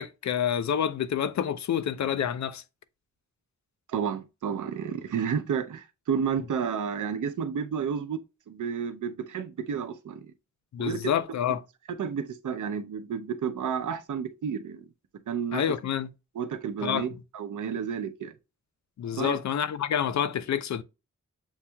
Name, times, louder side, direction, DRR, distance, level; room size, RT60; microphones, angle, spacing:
voice 1, 0.0-2.6 10.7-11.6 15.5-16.1 16.8-17.1 19.0-20.8, left 9 dB, 65° left, 0.5 m, -28 dB
voice 2, 3.9-8.2 8.5-10.2 10.8-11.0 12.0-14.9 15.3-15.6 16.4-17.1 17.3-18.3 19.2-19.3, right 7 dB, 80° right, 0.6 m, -31 dB
7.2 x 2.8 x 2.2 m
wide cardioid pair, 170°, 30 cm